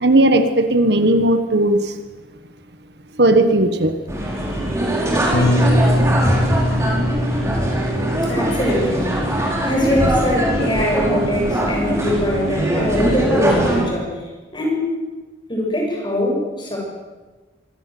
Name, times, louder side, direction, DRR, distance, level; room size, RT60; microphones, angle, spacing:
voice 1, 0.0-1.9 3.2-3.9, right 1 dB, 60° right, 8 dB, 1.5 m, -16 dB
sound 1, 4.1-13.8, right 1 dB, 15° right, 4.7 m, -21 dB
Bass guitar, 5.3-11.6, left 1 dB, 60° left, 2.5 m, -23 dB
voice 2, 8.2-9.2 9.6-14.9 15.5-16.8, left 1 dB, 25° left, -1 dB, 7.3 m, -22 dB
25.0 x 17.0 x 7.9 m, 1.3 s
head